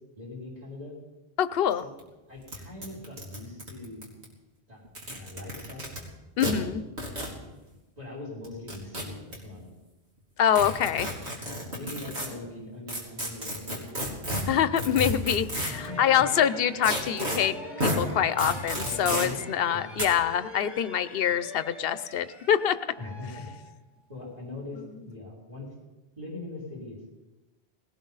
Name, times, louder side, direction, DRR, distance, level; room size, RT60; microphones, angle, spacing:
voice 1, 0.2-0.9 1.7-1.9 2.3-4.0 4.7-5.9 7.0-7.5 8.0-9.7 11.7-14.0 14.8-14.9 15.7-16.4 18.8-19.4 19.7-19.8 23.0-23.7 24.1-25.7 26.2-27.1, left 2 dB, 40° right, -5 dB, 4.9 m, -41 dB
voice 2, 1.4-1.8 6.4-6.8 10.4-11.1 14.5-22.8, left 9 dB, 65° left, 13 dB, 0.9 m, -25 dB
sound 1, 1.7-1.8 2.0-2.1 2.5-2.6 2.8-4.2 4.8-6.0 6.4-6.5 7.0-7.3 8.4-9.3 10.5-12.3 12.9-15.9 16.8-17.4 17.8-18.0 18.4-19.3 20.0-20.1, equal, 85° right, 3.4 m, -31 dB
sound 2, 15.6-24.2, left 1 dB, ahead, 2.3 m, -44 dB
19.5 x 17.5 x 4.0 m, 1.1 s
omnidirectional pair, 1.1 m